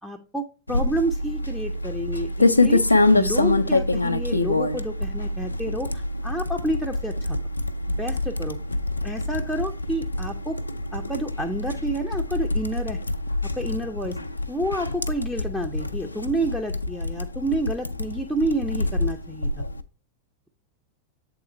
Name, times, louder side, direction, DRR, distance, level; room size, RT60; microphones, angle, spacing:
voice 1, 0.0-7.4 8.0-8.6 9.0-10.6 10.9-13.0 13.5-14.2 14.5-19.6, right 1 dB, ahead, 0 dB, 0.5 m, -29 dB
sound 1, 0.7-19.8, left 2 dB, 80° left, 0.4 m, -25 dB
7.7 x 3.6 x 4.1 m, 0.36 s
figure-of-eight pair, 90°, 0 cm